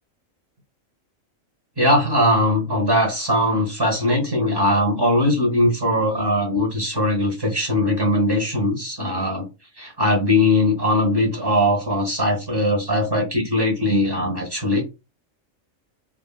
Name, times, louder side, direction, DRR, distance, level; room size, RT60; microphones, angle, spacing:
voice 1, 1.8-9.5 9.8-14.8, left 1 dB, 20° right, 0.8 m, -20 dB
2.9 x 2.7 x 2.3 m
omnidirectional pair, 1.4 m